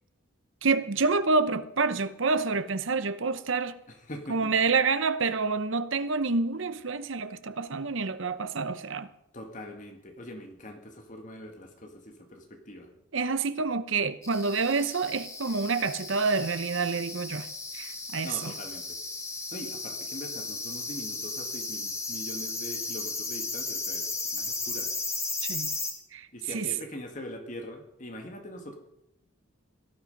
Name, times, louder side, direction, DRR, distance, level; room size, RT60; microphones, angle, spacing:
voice 1, 0.6-3.8 4.3-9.1 13.1-17.5 17.7-18.5 25.4-25.7 26.1-26.7, right 4 dB, 65° right, 0.8 m, -28 dB
voice 2, 3.9-4.5 9.3-12.9 18.2-19.0 19.5-24.9 26.3-28.8, equal, 35° left, 1.9 m, -42 dB
sound 1, 14.2-25.9, left 3 dB, 15° left, 1.9 m, -35 dB
17.5 x 12.0 x 5.4 m
head